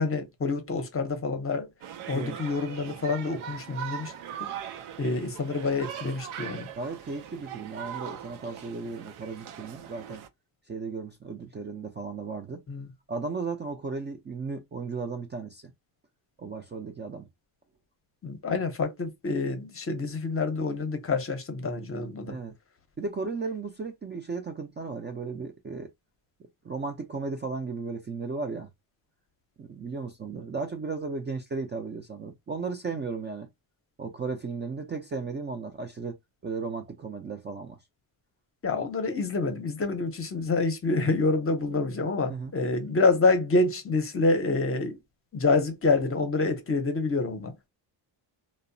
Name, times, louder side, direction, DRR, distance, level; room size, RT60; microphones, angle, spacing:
voice 1, 0.0-1.7 2.1-4.1 4.4-4.5 5.0-6.7 12.7-12.9 18.2-22.4 38.6-45.0 45.3-47.7, left 3 dB, 30° left, 0.7 m, -27 dB
sound 1, 1.8-10.3, right 9 dB, 90° right, 0.6 m, -40 dB
voice 2, 6.8-10.2 10.7-12.6 13.1-15.7 16.4-17.3 22.3-22.6 23.0-25.9 26.6-28.7 29.6-33.5 34.0-37.8 42.3-42.5, right 4 dB, 25° right, 0.4 m, -35 dB
2.7 x 2.1 x 2.6 m
cardioid pair, 100°, 48 cm